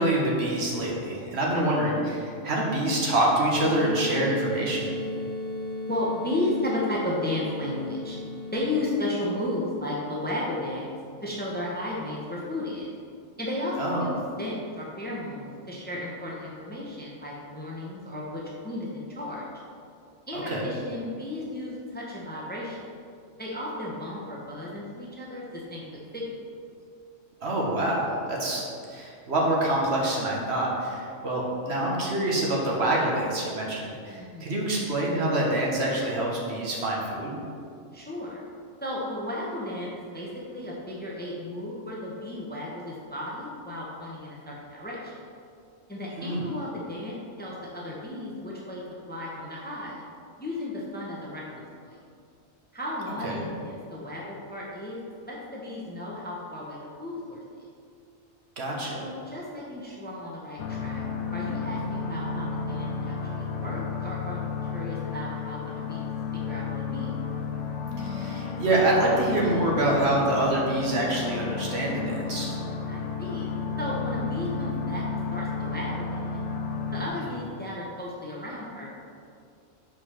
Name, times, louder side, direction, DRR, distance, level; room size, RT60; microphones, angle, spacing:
voice 1, 0.0-4.9 13.8-14.1 20.3-20.7 27.4-37.4 46.2-46.5 53.2-53.4 58.6-59.1 68.0-72.6, right 1 dB, 65° right, -3 dB, 1.4 m, -26 dB
sound 1, 3.5-8.5, left 1 dB, 90° right, 2.0 m, -34 dB
voice 2, 5.9-8.2 8.5-10.9 11.2-12.9 13.4-19.5 20.3-22.9 23.4-25.8 26.1-26.3 34.2-34.6 37.9-38.4 38.8-45.2 45.9-50.0 50.4-52.0 52.7-57.4 59.0-61.0 61.3-67.1 72.9-73.5 73.8-76.5 76.9-78.9, left 1 dB, 10° left, -4 dB, 0.8 m, -34 dB
sound 2, 60.6-77.1, left 5 dB, 80° left, 0.9 m, -32 dB
5.0 x 4.5 x 5.7 m, 2.3 s
omnidirectional pair, 1.2 m